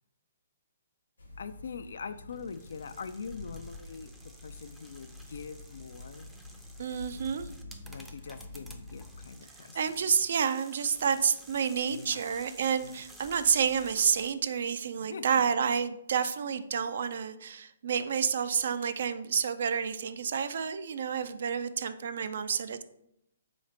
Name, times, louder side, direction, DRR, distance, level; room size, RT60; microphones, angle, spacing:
sound 1, 1.2-9.3, left 2 dB, 85° left, 1.1 m, -48 dB
voice 1, 1.4-4.1 4.4-6.3 7.8-9.8 11.9-12.2 12.8-13.0 14.9-15.2, left 5 dB, 70° left, 12 dB, 0.3 m, -43 dB
sound 2, 2.3-14.3, right 1 dB, 5° right, 0.5 m, -54 dB
voice 2, 6.8-7.5 9.7-22.8, right 7 dB, 60° right, 11 dB, 0.3 m, -29 dB
3.9 x 3.2 x 4.3 m, 0.77 s
figure-of-eight pair, 130°, 0 cm